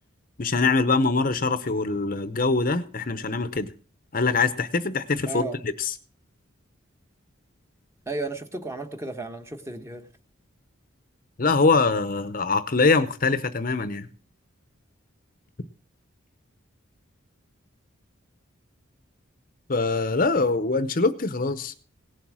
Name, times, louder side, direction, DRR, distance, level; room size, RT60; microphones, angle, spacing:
voice 1, 0.4-3.7 4.1-5.9 11.4-14.1 19.7-21.7, left 3 dB, 45° left, 12 dB, 0.8 m, -23 dB
voice 2, 5.3-5.6 8.1-10.1, right 2 dB, 15° right, 6 dB, 1.3 m, -33 dB
18.0 x 7.3 x 6.2 m, 0.40 s
head